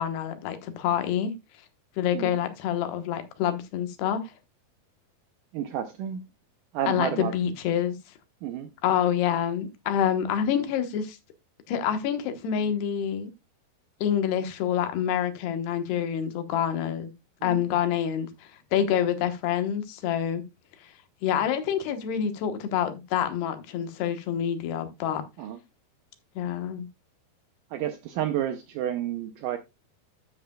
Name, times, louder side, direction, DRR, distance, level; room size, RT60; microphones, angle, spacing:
voice 1, 0.0-1.3 2.0-4.2 6.9-8.0 8.8-11.2 11.7-13.3 14.0-17.1 17.4-18.3 18.7-20.4 21.2-25.2 26.4-26.9, left 9 dB, 85° left, 3.3 m, -27 dB
voice 2, 5.5-6.3 6.7-7.5 8.4-8.7 17.4-17.6 25.4-25.6 27.7-29.6, right 10 dB, 80° right, 1.9 m, -31 dB
12.5 x 7.7 x 2.3 m
omnidirectional pair, 4.5 m